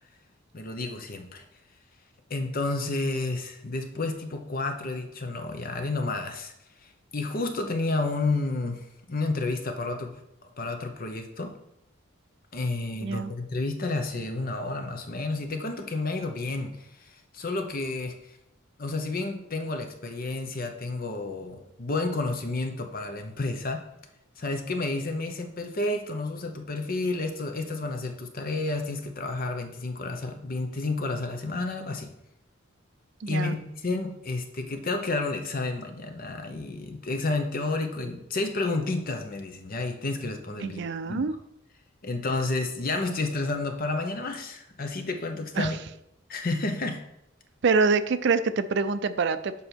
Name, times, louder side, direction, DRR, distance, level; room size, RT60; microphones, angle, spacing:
voice 1, 0.5-1.4 2.3-6.5 6.8-10.1 10.6-11.6 12.5-18.4 18.8-23.8 24.4-32.1 33.3-40.8 41.1-41.3 42.0-45.8 46.3-47.0, left 2 dB, 45° left, 5 dB, 0.8 m, -31 dB
voice 2, 13.0-13.3 33.2-33.6 40.6-41.3 45.6-45.7 47.6-49.5, right 4 dB, 60° right, 11 dB, 0.4 m, -25 dB
6.9 x 5.2 x 4.5 m, 0.81 s
head